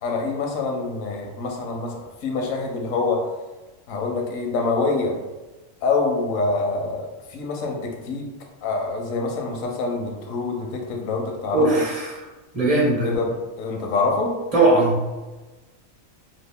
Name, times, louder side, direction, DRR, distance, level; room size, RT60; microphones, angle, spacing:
voice 1, 0.0-3.2 3.9-5.1 5.8-8.3 8.6-11.7 13.0-14.3, left 3 dB, 80° left, 1 dB, 1.1 m, -25 dB
voice 2, 11.5-12.3 12.5-13.1 14.5-15.0, right 2 dB, 35° right, -4 dB, 0.7 m, -19 dB
2.8 x 2.4 x 3.4 m, 1.2 s
omnidirectional pair, 1.4 m